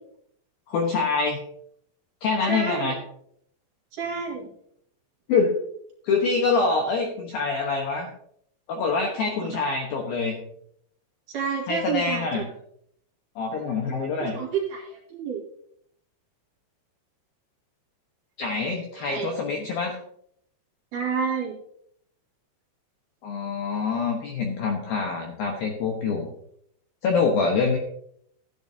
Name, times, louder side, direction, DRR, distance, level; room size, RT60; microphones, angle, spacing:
voice 1, 0.7-1.4 2.2-3.0 5.3-5.5 6.0-8.1 8.7-10.4 11.7-12.5 13.4-14.4 18.4-20.0 23.2-26.3 27.0-27.8, left 4 dB, 65° left, 1 dB, 2.4 m, -25 dB
voice 2, 2.5-3.0 3.9-4.5 11.3-12.4 14.2-15.4 19.0-19.3 20.9-21.5, right 6 dB, 50° right, -3 dB, 3.3 m, -29 dB
15.0 x 10.0 x 2.8 m, 0.68 s
omnidirectional pair, 5.6 m